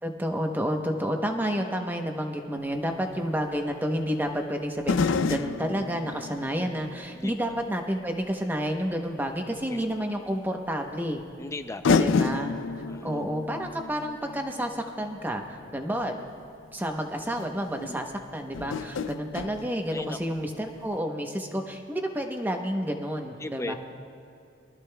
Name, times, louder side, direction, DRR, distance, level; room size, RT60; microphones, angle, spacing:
voice 1, 0.0-11.2 12.0-12.5 13.0-16.3 16.7-18.1 18.3-23.8, equal, 10° right, 4 dB, 0.8 m, -30 dB
sound 1, 2.7-2.8 4.8-7.8 8.2-8.3 9.9-10.0 11.2-11.3 11.8-15.9 16.9-17.0 17.3-17.5 18.5-20.5 20.7-20.8, left 4 dB, 85° left, 0.4 m, -29 dB
voice 2, 11.4-12.2 12.9-13.1 17.8-18.0 18.6-18.9 19.9-20.2 23.4-23.7, left 2 dB, 15° left, 9 dB, 0.4 m, -37 dB
23.0 x 13.5 x 2.2 m, 2.6 s
head